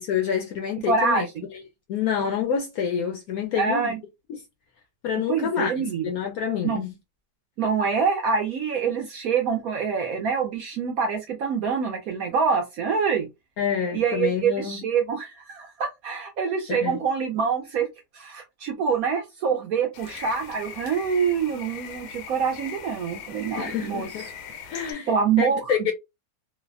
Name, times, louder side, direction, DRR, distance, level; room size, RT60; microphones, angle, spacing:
voice 1, 0.0-1.3 1.5-1.6 1.9-4.0 5.0-6.9 13.6-14.8 16.7-17.0 23.6-24.3 24.6-25.1 25.4-25.9, left 7 dB, 70° left, 0.9 m, -27 dB
voice 2, 0.9-1.4 3.6-4.0 5.3-6.0 6.6-6.8 7.6-13.3 13.9-17.9 18.1-24.1 25.1-25.9, right 6 dB, 70° right, 0.8 m, -25 dB
sound 1, 19.9-24.9, left 7 dB, 85° left, 1.3 m, -40 dB
3.2 x 2.1 x 2.4 m
omnidirectional pair, 1.9 m